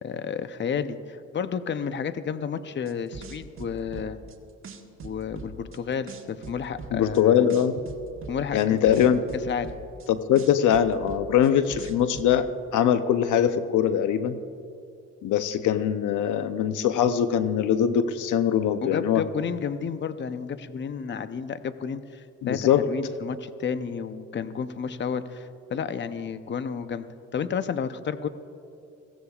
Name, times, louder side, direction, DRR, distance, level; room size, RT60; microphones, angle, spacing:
voice 1, 0.0-4.2 5.0-7.5 8.3-9.1 9.5-9.7 18.8-27.1 27.3-28.3, left 6 dB, 40° left, 11 dB, 0.7 m, -31 dB
sound 1, 2.9-4.3 4.6-5.8 6.1-7.2 7.5-10.1 10.4-12.3, right 5 dB, 45° right, 1.5 m, -41 dB
voice 2, 6.9-7.7 8.5-9.2 10.1-14.4 15.2-19.2 22.4-22.9, left 9 dB, 80° left, 11 dB, 0.7 m, -22 dB
22.5 x 16.5 x 2.4 m, 2.7 s
cardioid pair, 90°, 30 cm